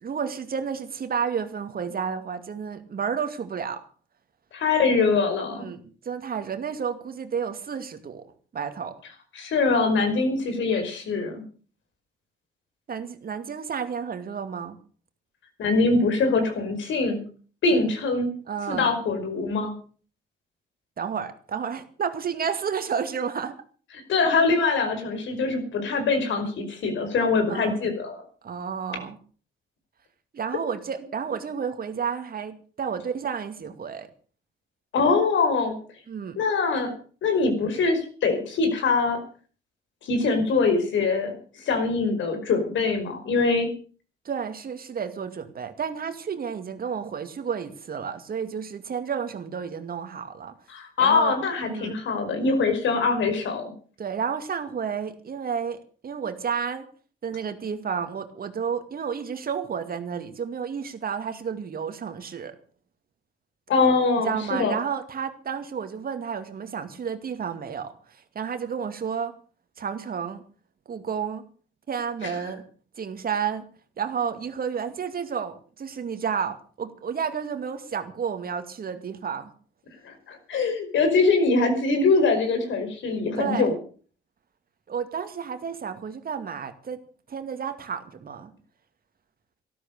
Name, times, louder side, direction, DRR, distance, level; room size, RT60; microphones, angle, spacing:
voice 1, 0.0-3.8 5.5-8.3 8.5-9.0 12.9-14.8 18.5-18.9 21.0-23.5 27.5-27.9 28.4-29.2 30.3-34.1 36.1-36.4 44.2-50.5 51.0-51.4 51.6-51.9 54.0-56.8 57.2-62.5 64.2-69.3 69.8-70.4 70.9-71.4 71.9-72.7 73.0-73.7 74.0-79.5 83.4-83.7 84.9-87.0 87.3-88.5, right 7 dB, 50° right, 8 dB, 2.3 m, -31 dB
voice 2, 4.5-5.6 9.3-11.4 15.6-17.2 17.6-18.3 18.7-19.7 24.1-28.2 34.9-35.8 36.4-36.9 37.2-39.2 40.0-43.7 50.7-53.7 63.7-64.7 72.2-72.3 80.0-83.7, left 4 dB, 70° left, 6 dB, 5.3 m, -23 dB
13.5 x 13.0 x 6.7 m, 0.43 s
cardioid pair, 90°, 20 cm